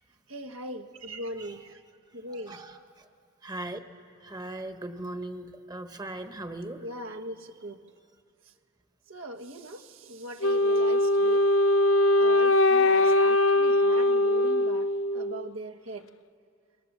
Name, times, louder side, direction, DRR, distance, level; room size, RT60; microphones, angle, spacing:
voice 1, 0.3-1.8 2.1-2.6 6.8-7.8 9.1-11.4 12.2-14.9 15.1-16.1, right 1 dB, 65° right, 7 dB, 1.3 m, -40 dB
voice 2, 2.5-3.0 3.4-3.8 4.2-6.8, right 1 dB, 20° right, 7 dB, 1.2 m, -39 dB
Wind instrument woodwind instrument, 10.4-15.5, left 1 dB, 75° left, 0.7 m, -22 dB
28.5 x 20.5 x 7.3 m, 2.5 s
head